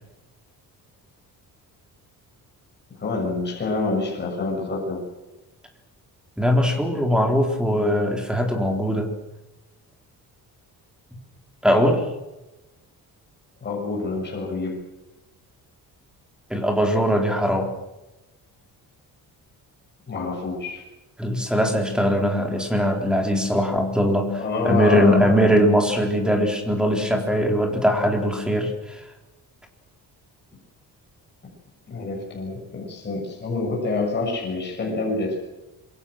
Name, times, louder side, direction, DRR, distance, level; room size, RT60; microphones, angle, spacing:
voice 1, 3.0-5.1 13.6-14.8 20.1-20.8 24.4-25.5 31.9-35.4, left 3 dB, 30° left, -1 dB, 6.8 m, -27 dB
voice 2, 6.4-9.1 11.6-12.0 16.5-17.7 21.2-29.0, equal, ahead, 3 dB, 3.9 m, -21 dB
27.0 x 23.0 x 6.5 m, 1.0 s
cardioid pair, 175°, 37 cm